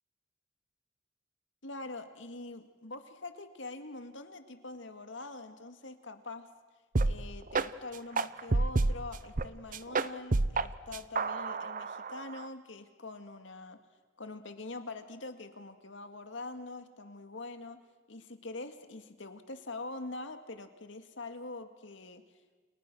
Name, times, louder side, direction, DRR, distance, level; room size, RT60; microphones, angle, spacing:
voice 1, 1.6-6.5 7.1-13.8 14.2-17.8 18.1-22.2, left 2 dB, 75° left, 8 dB, 2.2 m, -44 dB
sound 1, 6.9-7.1 7.5-7.7 8.2-9.5 9.7-10.7 10.9-12.4, right 3 dB, 45° right, 0.8 m, -29 dB
29.5 x 29.0 x 6.3 m, 1.3 s
head